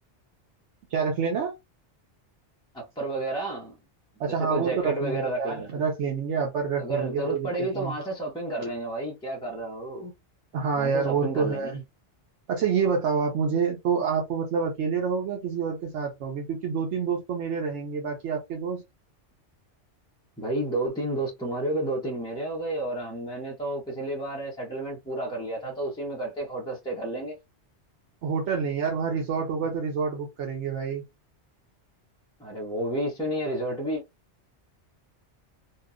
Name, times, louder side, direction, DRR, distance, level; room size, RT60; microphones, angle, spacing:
voice 1, 0.9-1.5 4.2-7.9 10.5-11.8 12.5-18.8 28.2-31.0, right 6 dB, 85° right, 1.0 m, -27 dB
voice 2, 2.7-3.8 4.3-5.7 6.8-10.1 10.8-11.8 20.4-27.4 32.4-34.0, right 1 dB, 5° left, 0.5 m, -31 dB
2.8 x 2.1 x 2.4 m
omnidirectional pair, 1.2 m